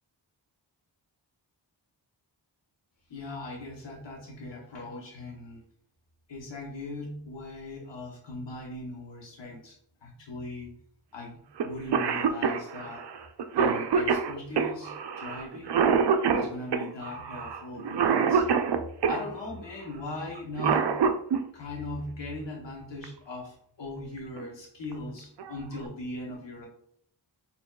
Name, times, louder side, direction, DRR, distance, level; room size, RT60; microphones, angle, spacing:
voice 1, 3.1-5.6 6.3-10.7 11.1-13.0 13.5-15.8 16.3-18.5 19.1-21.0 21.5-26.7, left 2 dB, 75° left, -2 dB, 1.0 m, -39 dB
Cough, 11.6-11.7 11.9-19.2 20.4-21.4 23.0-23.1 24.2-24.4 24.9-25.0 25.4-25.9, right 6 dB, 65° right, 0.5 m, -26 dB
4.4 x 3.6 x 2.3 m, 0.67 s
wide cardioid pair, 60°, 44 cm